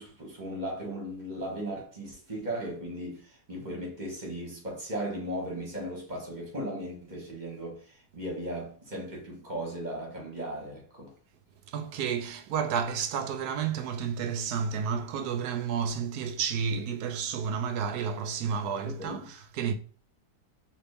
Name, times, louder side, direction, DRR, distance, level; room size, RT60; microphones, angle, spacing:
voice 1, 0.0-7.9 8.1-11.1 18.8-19.2, right 1 dB, 30° right, 1.5 m, -37 dB
voice 2, 11.7-19.7, right 7 dB, 75° right, 1.1 m, -31 dB
4.3 x 3.0 x 3.3 m
omnidirectional pair, 1.7 m